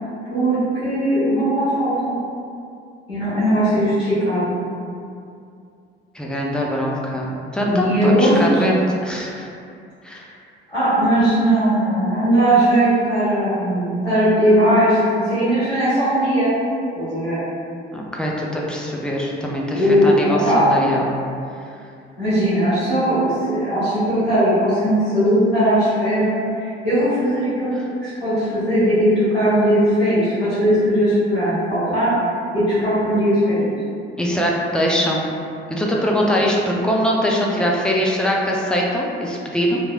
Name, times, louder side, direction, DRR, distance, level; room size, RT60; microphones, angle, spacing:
voice 1, 0.3-2.1 3.1-4.6 7.7-8.6 10.7-16.5 16.9-17.4 19.7-20.7 22.2-27.7 28.0-32.1 32.5-33.7, equal, 90° left, -15 dB, 1.3 m, -18 dB
voice 2, 6.1-9.5 10.0-10.2 17.9-21.1 34.2-35.2 35.7-39.8, equal, 5° left, -3 dB, 0.4 m, -22 dB
3.1 x 2.6 x 2.3 m, 2.5 s
figure-of-eight pair, 50°, 30 cm